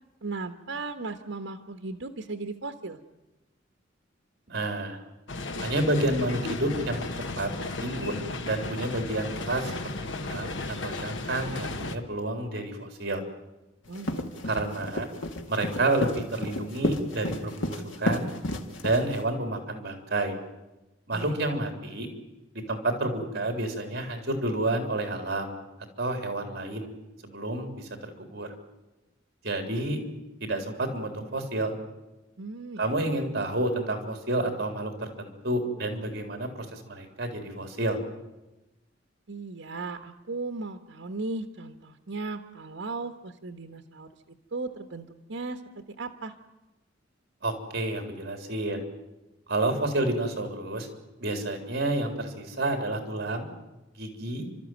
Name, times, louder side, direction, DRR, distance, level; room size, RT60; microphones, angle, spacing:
voice 1, 0.2-3.0 13.9-14.7 21.1-21.5 32.4-33.1 39.3-44.1 44.5-45.6 46.0-46.3, right 3 dB, 80° right, 6 dB, 1.3 m, -37 dB
voice 2, 4.5-5.0 5.6-7.1 7.4-7.5 7.8-9.7 10.2-13.2 14.5-15.1 15.5-18.3 18.8-20.4 21.1-22.1 22.7-25.5 26.0-26.9 27.2-28.5 29.4-30.0 30.4-31.8 32.8-38.0 47.4-48.8 49.5-50.9 51.2-53.5 54.0-54.4, right 2 dB, 55° right, 5 dB, 3.6 m, -29 dB
sound 1, 5.3-12.0, left 3 dB, 70° left, 1.3 m, -35 dB
sound 2, 13.9-19.3, left 1 dB, 90° left, 2.1 m, -32 dB
30.0 x 13.0 x 9.2 m, 1.0 s
head